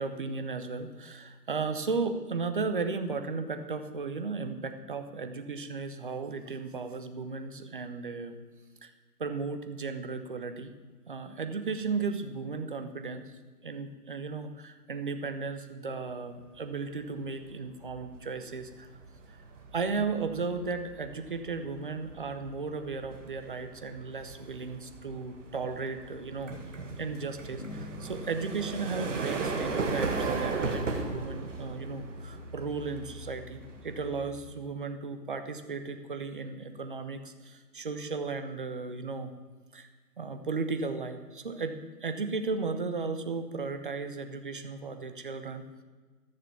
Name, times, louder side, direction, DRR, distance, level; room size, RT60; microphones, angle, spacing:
voice 1, 0.0-8.4 8.8-8.9 9.2-10.7 11.1-13.2 13.6-18.9 19.3-19.4 19.7-26.6 27.0-39.3 39.7-39.9 40.2-45.8, right 4 dB, 35° right, 8 dB, 0.8 m, -35 dB
sound 1, 17.2-17.5 17.8-34.6, right 4 dB, 50° right, 1.9 m, -37 dB
sound 2, 27.6-30.6, left 4 dB, 60° left, 1.5 m, -48 dB
14.0 x 6.7 x 7.1 m, 1.4 s
hypercardioid pair, 165°, 47 cm